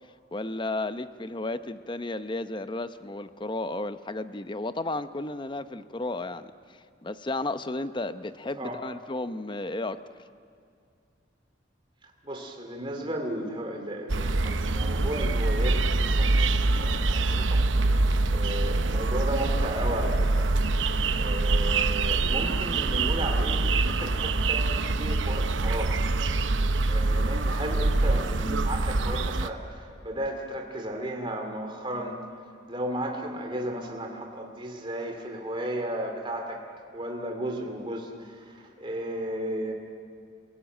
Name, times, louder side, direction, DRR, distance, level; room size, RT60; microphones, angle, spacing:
voice 1, 0.3-6.5 7.0-10.0, left 2 dB, 25° left, 11 dB, 0.8 m, -33 dB
voice 2, 12.0-20.5 21.1-26.0 26.9-32.2 32.7-36.7 36.9-39.7, right 1 dB, 25° right, 2 dB, 2.4 m, -34 dB
sound 1, 14.1-29.5, right 2 dB, 80° right, 0.9 m, -25 dB
28.5 x 17.5 x 9.1 m, 2.4 s
head